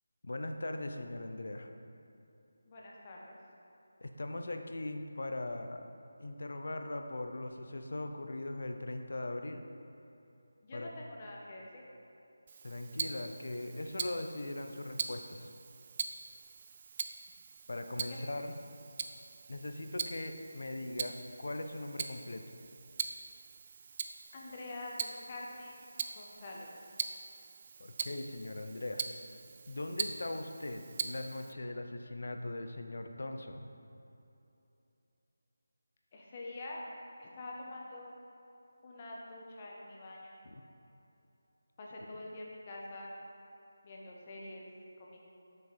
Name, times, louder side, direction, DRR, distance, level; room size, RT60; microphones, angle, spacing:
voice 1, 0.2-1.7 4.0-5.8 6.2-9.7 10.7-10.9 12.6-15.5 17.7-18.6 19.5-22.4 27.8-29.0 29.7-33.7 40.4-40.6, left 2 dB, 65° left, 5 dB, 0.6 m, -40 dB
voice 2, 2.6-3.4 10.6-11.8 18.1-18.2 24.3-26.8 36.1-36.8 37.2-38.1 38.8-40.4 41.8-43.1 43.8-44.7 45.0-45.2, left 2 dB, 30° left, -3 dB, 1.1 m, -46 dB
Tick-tock, 12.5-31.5, right 5 dB, 35° right, 0.4 m, -42 dB
7.4 x 6.6 x 4.2 m, 2.9 s
figure-of-eight pair, 160°, 0 cm